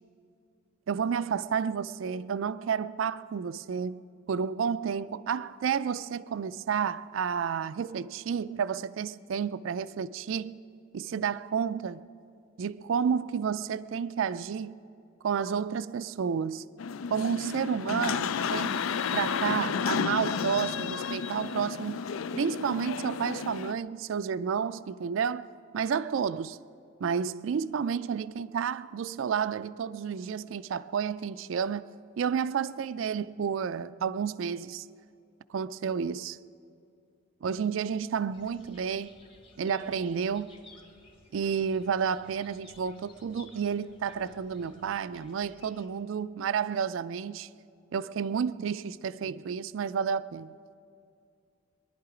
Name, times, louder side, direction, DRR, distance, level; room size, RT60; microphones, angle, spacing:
voice 1, 0.9-4.0 4.3-10.6 10.9-12.0 12.6-14.8 15.2-16.6 17.1-18.9 19.1-22.0 22.3-25.5 25.7-26.6 27.0-31.8 32.2-34.9 35.5-36.4 37.4-39.1 39.6-40.5 41.3-47.5 47.9-50.5, right 7 dB, 75° right, 0.4 m, -31 dB
sound 1, 16.8-23.7, left 6 dB, 85° left, 0.4 m, -32 dB
sound 2, 38.3-45.9, left 2 dB, 25° left, 1.4 m, -56 dB
23.0 x 11.0 x 4.9 m
head